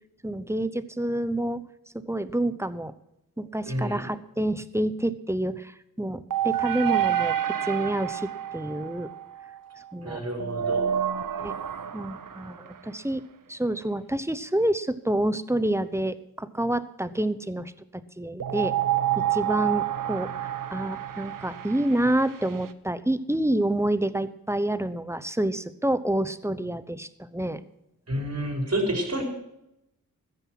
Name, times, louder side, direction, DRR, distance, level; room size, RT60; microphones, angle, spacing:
voice 1, 0.2-1.6 2.1-2.9 3.4-9.1 9.9-10.2 11.4-11.5 11.9-13.2 13.5-17.7 18.2-18.7 19.2-20.3 20.7-27.6, right 1 dB, 5° right, 13 dB, 0.9 m, -28 dB
voice 2, 3.7-4.0 10.0-10.9 28.1-29.2, right 1 dB, 45° right, 2 dB, 4.7 m, -29 dB
sound 1, 6.3-9.9 10.4-12.9 18.4-22.7, right 10 dB, 65° right, 0.9 m, -29 dB
14.5 x 10.0 x 5.9 m, 0.84 s
cardioid pair, 70°, 35 cm